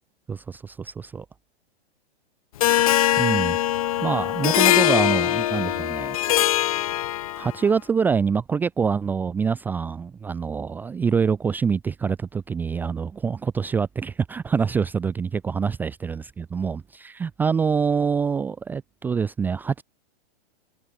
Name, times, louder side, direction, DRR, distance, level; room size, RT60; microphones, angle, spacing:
voice 1, 0.3-1.3 3.2-3.6 4.0-6.2 7.3-19.8, right 6 dB, 5° right, 0.8 m, -25 dB
Harp, 2.6-7.6, left 13 dB, 35° left, 0.6 m, -22 dB
hypercardioid pair, 165°, 32 cm